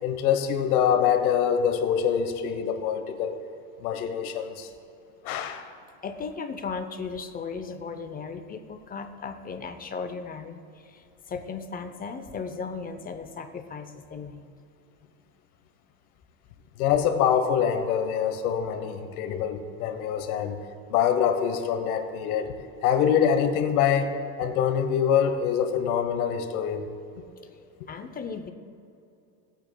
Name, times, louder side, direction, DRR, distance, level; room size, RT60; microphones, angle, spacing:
voice 1, 0.0-3.4 3.8-4.7 5.2-5.7 16.8-20.6 20.9-22.5 22.8-26.9, left 8 dB, 85° left, 8 dB, 1.1 m, -25 dB
voice 2, 6.0-14.5 27.5-27.6 27.9-28.5, left 5 dB, 20° left, 7 dB, 0.6 m, -36 dB
19.0 x 8.3 x 2.2 m, 2.6 s
supercardioid pair, 120°, 43 cm